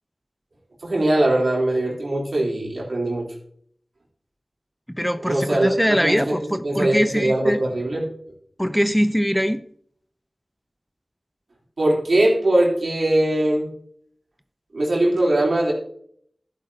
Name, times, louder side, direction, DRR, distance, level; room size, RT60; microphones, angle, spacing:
voice 1, 0.8-3.3 5.2-6.4 6.6-8.1 11.8-13.7 14.7-15.7, right 1 dB, 80° right, -2 dB, 3.5 m, -21 dB
voice 2, 4.9-7.6 8.6-9.6, equal, 5° left, 11 dB, 0.6 m, -22 dB
12.0 x 10.5 x 2.8 m, 0.62 s
wide cardioid pair, 40°, 0 cm